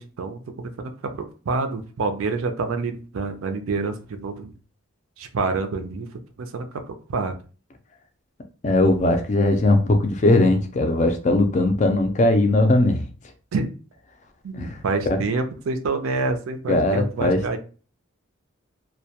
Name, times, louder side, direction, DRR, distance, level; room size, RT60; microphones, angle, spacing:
voice 1, 0.0-4.5 5.2-6.1 6.4-7.4 13.5-13.7 14.4-17.6, right 3 dB, 80° right, 7 dB, 0.4 m, -27 dB
voice 2, 8.6-13.0 14.6-14.8 16.7-17.6, left 2 dB, 35° left, 6 dB, 0.3 m, -19 dB
2.2 x 2.1 x 2.8 m, 0.37 s
head